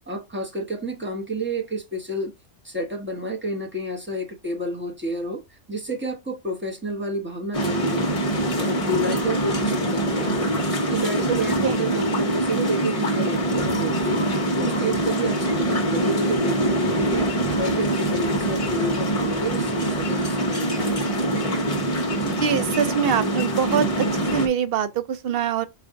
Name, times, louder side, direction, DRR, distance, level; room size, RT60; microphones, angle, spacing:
voice 1, 0.1-2.3 2.6-10.5 10.8-14.2 14.6-21.2, right 1 dB, 10° right, 0.9 m, -30 dB
sound 1, 7.5-24.5, right 1 dB, 30° left, 1.0 m, -24 dB
voice 2, 22.2-25.7, right 7 dB, 60° right, 0.7 m, -24 dB
5.0 x 2.5 x 3.6 m
omnidirectional pair, 1.3 m